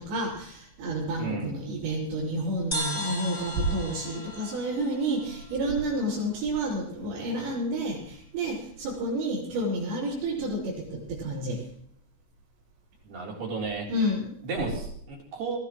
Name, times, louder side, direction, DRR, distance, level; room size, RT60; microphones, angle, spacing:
voice 1, 0.0-11.6 13.9-14.4, right 1 dB, 85° right, -8 dB, 7.6 m, -30 dB
voice 2, 1.2-1.6 13.0-13.9 14.4-15.6, right 4 dB, 45° right, -1 dB, 4.9 m, -33 dB
sound 1, 2.7-6.2, equal, 10° left, 1.9 m, -36 dB
21.5 x 18.0 x 3.2 m, 0.66 s
omnidirectional pair, 5.9 m